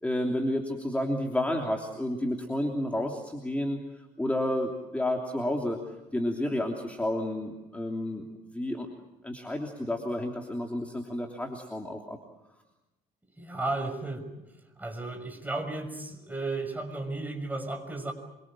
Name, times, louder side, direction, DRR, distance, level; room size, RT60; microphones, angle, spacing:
voice 1, 0.0-5.8 6.1-8.2 8.5-8.9 9.2-12.2, left 1 dB, 10° left, 1 dB, 3.1 m, -31 dB
voice 2, 13.4-14.5 14.8-18.1, right 2 dB, 10° right, 5 dB, 6.0 m, -34 dB
26.5 x 24.5 x 7.5 m, 1.0 s
cardioid pair, 110°, 17 cm